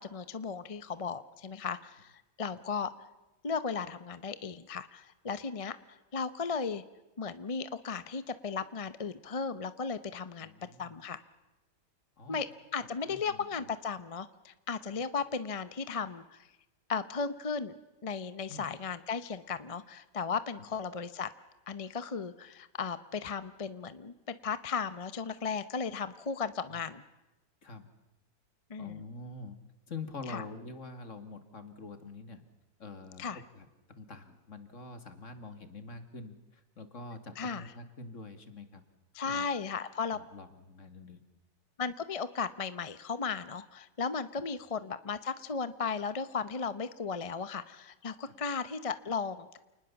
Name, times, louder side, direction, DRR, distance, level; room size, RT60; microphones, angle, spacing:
voice 1, 0.0-2.1 2.4-2.9 3.4-6.8 7.2-10.5 10.8-11.2 12.3-12.5 12.7-16.5 16.9-17.7 18.0-21.3 21.7-27.0 28.7-29.0 30.3-30.4 33.2-33.4 37.4-37.6 39.1-40.2 41.8-49.6, left 5 dB, 30° left, 13 dB, 0.7 m, -35 dB
voice 2, 10.4-11.0 12.2-12.4 12.8-13.5 18.5-18.7 20.6-20.7 26.7-26.8 27.6-27.9 28.8-29.6 29.9-32.4 32.8-38.8 39.3-39.5 40.1-41.2 44.3-44.4 48.3-48.4, left 3 dB, 50° left, 9 dB, 2.4 m, -46 dB
28.5 x 20.0 x 7.1 m, 1.0 s
omnidirectional pair, 1.6 m